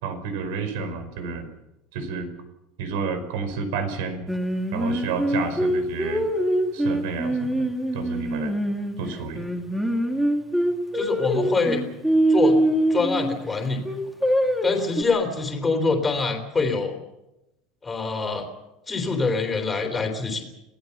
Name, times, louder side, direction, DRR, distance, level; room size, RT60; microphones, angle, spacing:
voice 1, 0.0-1.5 1.9-2.3 2.8-4.3 4.7-6.2 6.7-7.7 7.9-8.5 9.0-9.5, right 5 dB, 80° right, 10 dB, 5.0 m, -30 dB
Singing, 4.3-9.0 9.3-13.4 13.8-15.0, right 1 dB, 5° right, 2.4 m, -23 dB
voice 2, 10.9-11.8 12.3-12.6 12.9-13.8 14.6-17.0 17.8-18.5 18.9-20.5, left 4 dB, 10° left, 3 dB, 3.5 m, -25 dB
26.0 x 18.0 x 7.1 m, 0.95 s
cardioid pair, 165°, 0 cm